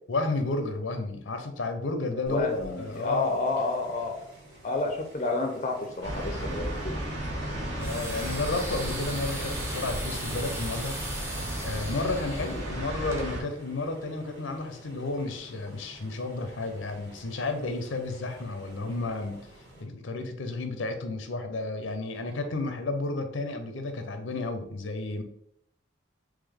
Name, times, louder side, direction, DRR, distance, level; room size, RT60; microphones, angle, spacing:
voice 1, 0.1-3.3 7.8-11.0 11.6-19.4 19.8-25.2, left 2 dB, 85° left, 6 dB, 0.6 m, -32 dB
voice 2, 2.3-4.2 4.6-7.0, left 3 dB, 35° left, 4 dB, 0.5 m, -30 dB
sound 1, 2.3-19.8, right 1 dB, 65° right, 1.6 m, -51 dB
sound 2, 6.0-13.4, right 1 dB, 85° right, 1.6 m, -34 dB
sound 3, 7.8-13.3, right 1 dB, 15° right, 0.6 m, -39 dB
3.7 x 3.1 x 3.5 m, 0.74 s
head